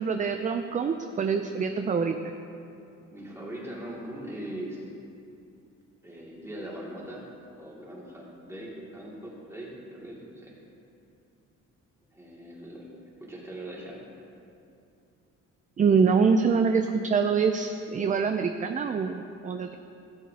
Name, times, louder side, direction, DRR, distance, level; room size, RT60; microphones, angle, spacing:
voice 1, 0.0-2.2 15.8-19.8, right 5 dB, 25° right, 7 dB, 0.4 m, -25 dB
voice 2, 3.1-4.9 6.0-7.3 7.5-10.5 12.1-12.8 13.2-14.0, right 1 dB, 10° right, -5 dB, 2.4 m, -40 dB
15.0 x 7.4 x 2.8 m, 2.6 s
cardioid pair, 90°, 30 cm